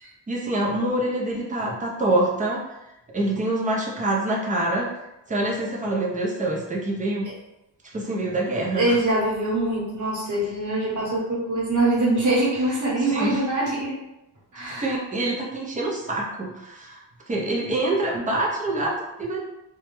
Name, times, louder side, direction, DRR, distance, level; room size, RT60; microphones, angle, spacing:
voice 1, 0.3-2.6 3.1-4.9 5.3-7.3 7.9-9.0 13.0-13.4 14.6-19.4, right 1 dB, 20° right, -3 dB, 0.4 m, -26 dB
voice 2, 8.8-13.9 14.5-14.9, right 2 dB, 40° right, -6 dB, 1.0 m, -23 dB
2.2 x 2.0 x 2.9 m, 0.91 s
wide cardioid pair, 145°, 44 cm